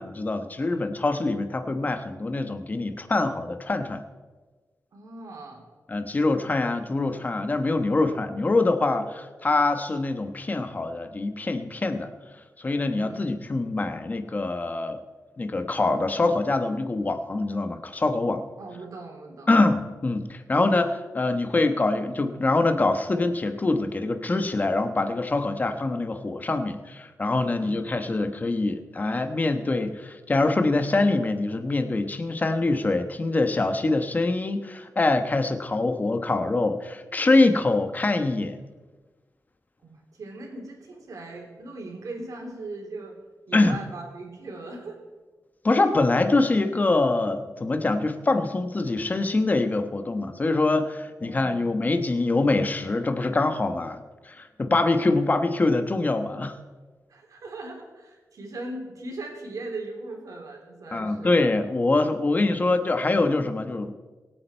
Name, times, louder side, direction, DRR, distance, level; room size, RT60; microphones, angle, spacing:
voice 1, 0.0-4.0 5.9-12.1 12.6-15.0 15.4-18.5 19.5-38.6 43.5-43.8 45.6-56.6 60.9-63.9, left 2 dB, 30° left, 8 dB, 1.1 m, -24 dB
voice 2, 4.9-5.6 13.0-13.3 18.6-19.5 27.5-27.8 39.8-43.1 43.5-45.0 51.2-51.7 54.8-55.4 57.1-61.3, right 2 dB, 75° right, 1 dB, 3.4 m, -39 dB
25.0 x 8.9 x 4.5 m, 1.3 s
wide cardioid pair, 145°, 6 cm